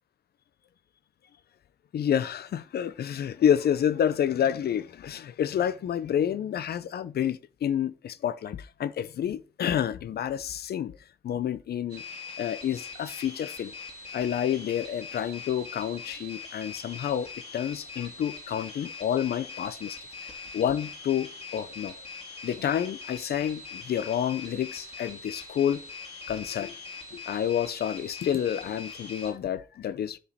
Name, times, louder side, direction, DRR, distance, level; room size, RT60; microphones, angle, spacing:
voice 1, 1.9-11.0 11.2-12.0 12.4-13.7 14.1-20.0 20.5-22.0 22.4-25.8 26.3-26.7 27.1-30.2, left 9 dB, 80° left, 0.6 m, -29 dB
sound 1, 11.9-29.3, left 4 dB, 40° left, 2.6 m, -42 dB
10.0 x 5.0 x 4.2 m
wide cardioid pair, 150°, 16 cm